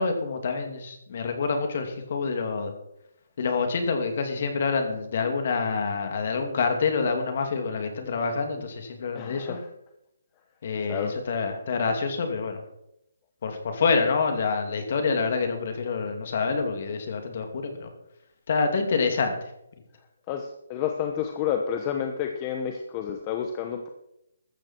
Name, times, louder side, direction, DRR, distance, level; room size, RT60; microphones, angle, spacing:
voice 1, 0.0-2.7 3.4-9.6 10.6-12.6 13.4-17.9 18.5-19.3, left 4 dB, 45° left, 5 dB, 2.7 m, -27 dB
voice 2, 9.1-9.6 10.9-11.1 20.3-23.9, left 8 dB, 20° left, 4 dB, 1.0 m, -30 dB
15.0 x 13.5 x 4.6 m, 0.83 s
hypercardioid pair, 170°, 0 cm